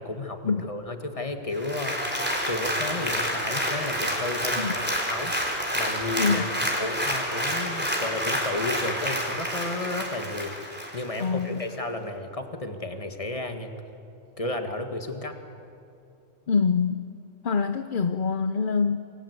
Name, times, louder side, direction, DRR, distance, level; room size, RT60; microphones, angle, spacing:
voice 1, 0.0-6.5 6.8-10.6 10.9-13.7 14.4-15.4, left 2 dB, 25° left, 6 dB, 1.9 m, -33 dB
Applause, 1.5-11.3 11.7-11.8, equal, 5° right, 3.7 m, -29 dB
voice 2, 11.2-11.7 16.5-17.0 17.4-19.0, left 5 dB, 50° left, 9 dB, 0.8 m, -25 dB
27.5 x 22.5 x 8.3 m, 2.6 s
omnidirectional pair, 1.4 m